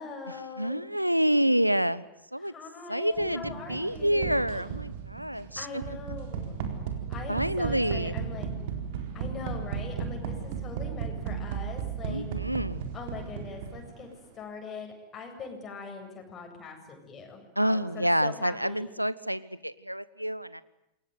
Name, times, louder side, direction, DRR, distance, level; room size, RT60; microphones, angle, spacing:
voice 1, 0.0-0.8 2.4-4.4 5.6-6.6 7.1-8.5 9.1-12.3 12.9-14.1 14.3-18.9, left 4 dB, 25° left, 2 dB, 7.8 m, -42 dB
voice 2, 0.6-2.0 2.3-2.5 2.9-5.8 7.3-8.1 12.1-12.9 17.6-20.6, equal, 90° right, 18 dB, 1.0 m, -28 dB
sound 1, 3.2-14.0, right 7 dB, 50° right, 4.1 m, -35 dB
28.0 x 22.0 x 9.6 m, 0.83 s
figure-of-eight pair, 90°, 0 cm